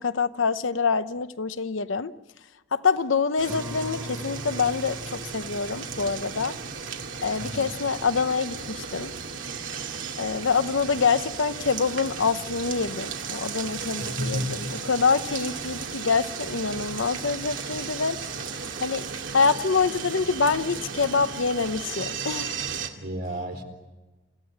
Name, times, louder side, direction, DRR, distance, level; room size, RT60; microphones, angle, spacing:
voice 1, 0.0-2.1 2.7-6.5 7.2-9.1 10.2-18.2 18.8-19.0 19.3-22.5, left 5 dB, 85° left, 13 dB, 0.8 m, -26 dB
sound 1, 3.4-22.9, right 5 dB, 85° right, 2.4 m, -35 dB
Guitar, 3.5-8.9, equal, 15° right, 2.7 m, -43 dB
voice 2, 7.4-7.7 14.2-14.7 23.0-23.6, equal, 55° right, 3 dB, 4.1 m, -31 dB
29.0 x 15.5 x 9.7 m, 1.2 s
head